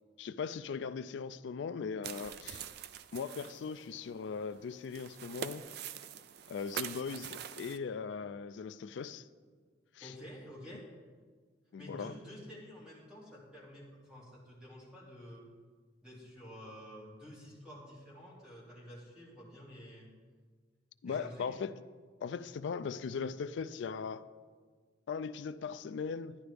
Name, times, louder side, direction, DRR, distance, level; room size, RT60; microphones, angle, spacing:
voice 1, 0.2-2.6 3.1-5.7 6.5-9.3 10.0-10.1 11.7-12.1 21.0-21.7 22.2-24.2 25.1-26.4, left 5 dB, 70° left, 0.3 m, -39 dB
sound 1, 2.0-7.8, right 8 dB, 60° right, 0.4 m, -44 dB
voice 2, 10.0-10.9 11.8-15.4 16.0-20.1 21.0-21.6, equal, 5° right, 2.5 m, -50 dB
11.0 x 10.0 x 3.4 m
head